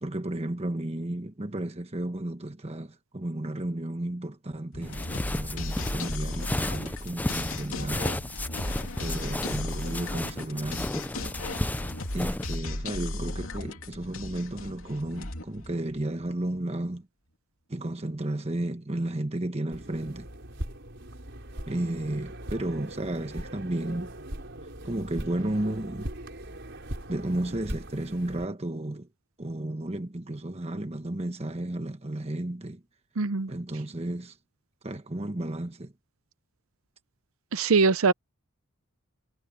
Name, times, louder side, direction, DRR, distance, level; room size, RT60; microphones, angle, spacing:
voice 1, 0.0-8.1 9.0-11.0 12.1-17.1 17.7-20.3 21.7-24.1 24.8-26.1 27.1-29.1 29.4-32.8 33.5-34.4 34.8-35.9, right 1 dB, 30° right, 1.2 m, -33 dB
sound 1, 4.7-16.4, left 2 dB, 75° left, 2.9 m, -36 dB
sound 2, 4.8-12.6, left 1 dB, 10° left, 0.4 m, -33 dB
sound 3, 19.7-28.5, right 1 dB, 55° right, 5.2 m, -40 dB
voice 2, 33.2-33.5 37.5-38.1, right 4 dB, 80° right, 0.7 m, -22 dB
head